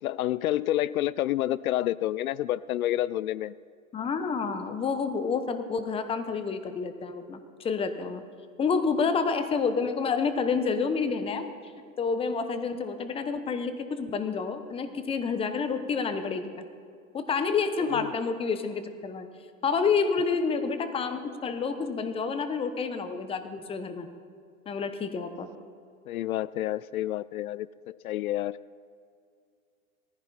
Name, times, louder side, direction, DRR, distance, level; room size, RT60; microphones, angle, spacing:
voice 1, 0.0-3.5 17.9-18.1 26.1-28.6, left 13 dB, 80° left, 20 dB, 0.5 m, -29 dB
voice 2, 3.9-8.2 8.6-11.5 12.0-16.6 17.1-19.3 19.6-24.1 24.7-25.5, left 5 dB, 15° left, 9 dB, 0.9 m, -29 dB
18.5 x 15.0 x 4.2 m, 2.3 s
hypercardioid pair, 125°, 42 cm